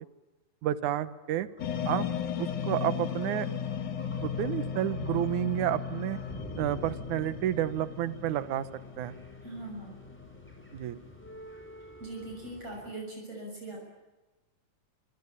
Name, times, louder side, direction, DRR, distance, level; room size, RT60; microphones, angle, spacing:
voice 1, 0.6-1.5 1.9-2.1 2.4-3.5 4.2-6.2 6.6-8.7 9.0-9.1 10.7-11.0, right 12 dB, 85° right, 13 dB, 2.5 m, -30 dB
sound 1, 1.3-12.9, equal, 5° left, 5.3 m, -50 dB
sound 2, 1.6-11.3, left 7 dB, 80° left, 3.6 m, -36 dB
voice 2, 9.4-9.9 12.0-13.9, right 2 dB, 50° right, -1 dB, 7.8 m, -41 dB
27.0 x 25.0 x 8.6 m, 1.1 s
omnidirectional pair, 3.4 m